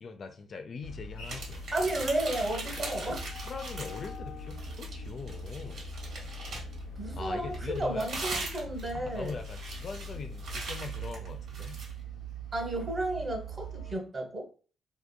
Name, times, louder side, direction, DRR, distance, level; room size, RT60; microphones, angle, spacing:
voice 1, 0.0-1.6 2.8-2.9 3.4-5.9 7.1-8.1 8.9-11.8, left 5 dB, 45° left, 7 dB, 0.3 m, -42 dB
sound 1, 0.8-13.9, right 1 dB, 90° left, 0.8 m, -41 dB
sound 2, 1.2-4.2 4.5-6.8 7.5-11.9, right 3 dB, 70° right, 1.1 m, -40 dB
voice 2, 1.7-3.3 7.0-9.4 12.5-14.5, right 1 dB, 30° right, 1 dB, 0.8 m, -33 dB
2.8 x 2.4 x 2.2 m, 0.40 s
cardioid pair, 90°, 0 cm